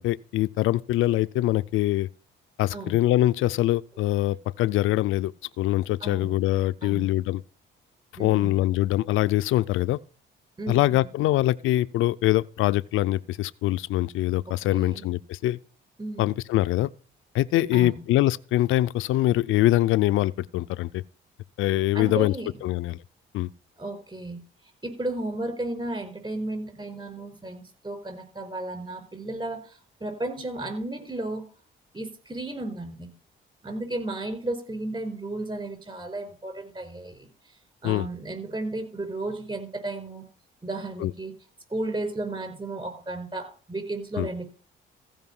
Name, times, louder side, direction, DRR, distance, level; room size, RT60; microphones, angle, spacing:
voice 1, 0.0-2.1 2.6-5.3 5.6-7.4 8.2-10.0 10.7-15.6 16.2-16.9 17.3-21.0 21.6-22.3 22.6-23.0 23.3-23.5 37.8-38.1 41.0-41.1 44.2-44.3, left 15 dB, 85° left, 0.5 m, -23 dB
voice 2, 6.0-6.4 6.8-7.1 8.2-8.5 10.6-11.3 14.7-15.1 16.0-16.4 17.7-18.0 21.9-22.5 23.8-24.4 24.8-31.4 31.9-33.1 33.6-37.3 37.8-40.2 40.6-41.3 41.7-44.4, right 2 dB, 25° right, 5.1 m, -34 dB
15.5 x 5.2 x 5.4 m
cardioid pair, 90°, 20 cm